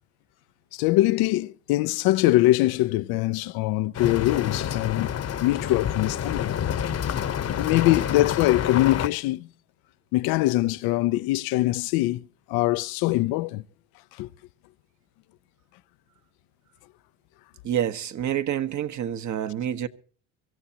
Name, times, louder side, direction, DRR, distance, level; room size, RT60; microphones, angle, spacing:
voice 1, 0.7-5.1 5.4-6.5 7.5-9.5 10.1-12.2 12.5-13.6 14.2-14.3, left 17 dB, 75° left, 0.6 m, -23 dB
sound 1, 3.9-9.1, left 9 dB, 40° left, 1.0 m, -28 dB
voice 2, 17.6-19.9, right 10 dB, 50° right, 1.2 m, -28 dB
24.0 x 14.5 x 2.9 m
supercardioid pair, 85°, 37 cm